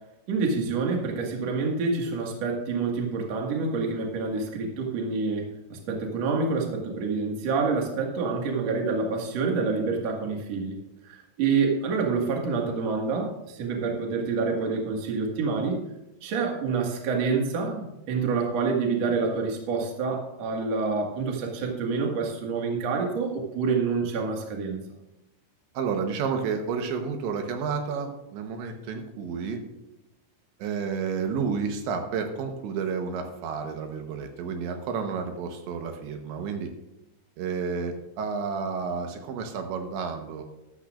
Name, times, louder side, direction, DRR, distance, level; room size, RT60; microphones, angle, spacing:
voice 1, 0.3-10.8 11.0-15.8 16.2-24.8, right 4 dB, 50° right, 0 dB, 2.3 m, -27 dB
voice 2, 25.8-29.6 30.6-36.7 37.4-40.4, right 5 dB, 80° right, 5 dB, 3.4 m, -31 dB
14.0 x 12.5 x 2.5 m, 0.93 s
omnidirectional pair, 5.2 m